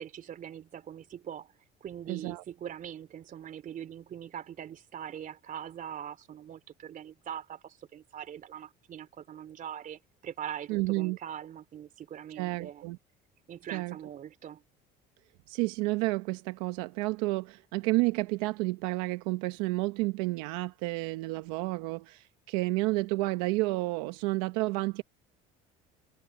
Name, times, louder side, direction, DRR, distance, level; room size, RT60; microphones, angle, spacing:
voice 1, 0.0-1.5 1.8-12.8 13.5-14.6, right 9 dB, 45° right, 3.2 m, -42 dB
voice 2, 2.1-2.4 10.7-11.2 12.4-13.0 13.7-13.9 15.5-25.0, right 22 dB, 85° right, 1.1 m, -30 dB
supercardioid pair, 100°, 19 cm